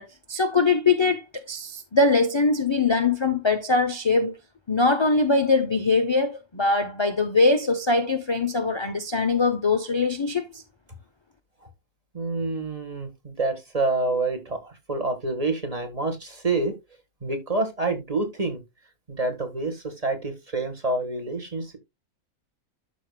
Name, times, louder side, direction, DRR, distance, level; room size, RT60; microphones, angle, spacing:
voice 1, 0.0-4.3 4.7-10.6, left 3 dB, 35° left, 0.4 m, -22 dB
voice 2, 12.1-16.7 17.2-18.6 19.1-21.8, right 3 dB, 25° right, 1.5 m, -27 dB
12.0 x 5.0 x 2.2 m
omnidirectional pair, 1.6 m